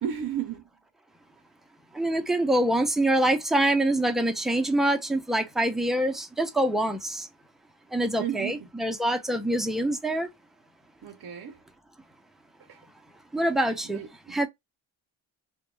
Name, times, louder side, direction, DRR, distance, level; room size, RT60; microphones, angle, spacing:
voice 1, 0.0-0.7 8.1-8.7 11.0-11.6 12.7-12.8 13.8-14.4, right 9 dB, 45° right, 0.6 m, -34 dB
voice 2, 1.9-7.3 7.9-10.3 13.3-14.0 14.3-14.5, right 1 dB, ahead, 0.3 m, -25 dB
2.1 x 2.1 x 3.0 m
cardioid pair, 105°, 48 cm